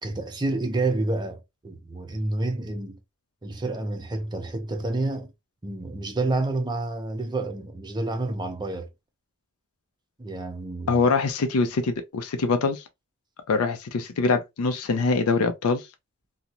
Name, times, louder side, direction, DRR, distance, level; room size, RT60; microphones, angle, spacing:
voice 1, 0.0-3.0 3.4-5.3 5.6-8.9 10.2-11.0, right 2 dB, 20° right, 0.6 m, -29 dB
voice 2, 10.9-12.8 13.5-15.9, left 4 dB, 85° left, 0.4 m, -24 dB
2.4 x 2.0 x 2.8 m
head